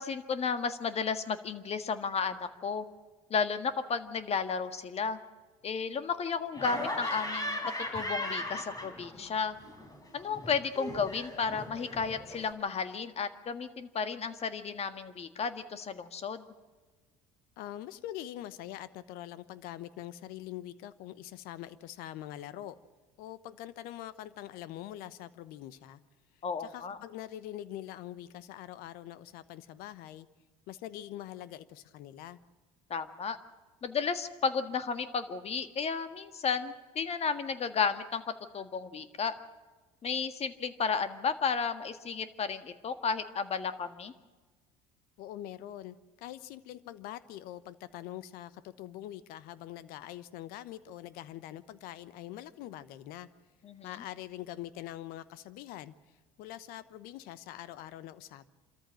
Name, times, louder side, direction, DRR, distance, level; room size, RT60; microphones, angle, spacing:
voice 1, 0.0-2.9 3.3-5.2 5.6-7.6 7.9-9.6 10.1-16.4 26.4-27.0 32.9-33.4 33.8-38.2 38.5-39.4 40.0-44.1 53.6-53.9, left 5 dB, 40° left, 10 dB, 1.7 m, -33 dB
Laughter, 6.5-9.3 9.6-12.5, left 1 dB, 25° left, 4.1 m, -38 dB
voice 2, 17.6-22.8 23.2-26.0 26.6-30.3 30.7-32.4 45.2-53.3 53.8-55.9 56.4-58.5, left 13 dB, 70° left, 16 dB, 1.0 m, -44 dB
26.5 x 14.0 x 7.7 m, 1.3 s
hypercardioid pair, 70°, 16 cm